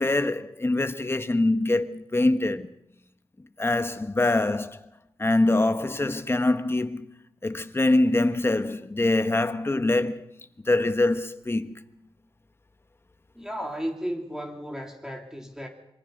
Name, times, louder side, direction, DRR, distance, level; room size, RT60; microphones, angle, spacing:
voice 1, 0.0-2.7 3.6-4.8 5.2-7.1 7.4-10.3 10.6-11.7, left 2 dB, 25° left, 1.3 m, -24 dB
voice 2, 13.3-15.7, equal, 5° right, 3.3 m, -34 dB
26.0 x 24.0 x 5.4 m
wide cardioid pair, 90°, 10 cm